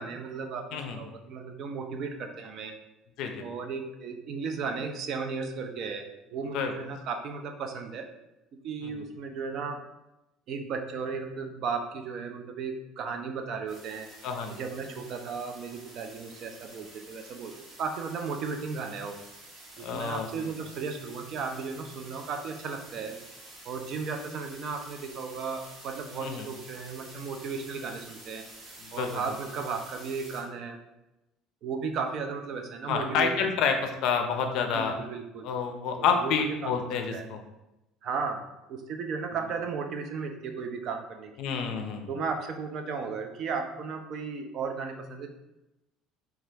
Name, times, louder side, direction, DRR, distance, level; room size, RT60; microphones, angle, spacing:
voice 1, 0.0-2.7 3.4-8.1 8.6-9.8 10.5-14.1 14.5-17.5 17.8-19.2 19.8-23.2 23.6-28.4 28.9-30.8 31.6-33.5 34.7-35.5 36.0-36.7 37.0-37.3 38.0-38.4 38.7-41.5 42.1-45.3, right 5 dB, 50° right, 5 dB, 0.4 m, -35 dB
sound 1, 13.7-30.4, right 2 dB, 65° right, 1.1 m, -49 dB
voice 2, 14.2-14.6 19.8-20.3 26.2-26.4 28.8-29.2 32.9-35.0 35.4-37.4 41.4-42.1, left 6 dB, 60° left, 5 dB, 0.4 m, -28 dB
2.8 x 2.3 x 3.3 m, 0.95 s
cardioid pair, 140°, 0 cm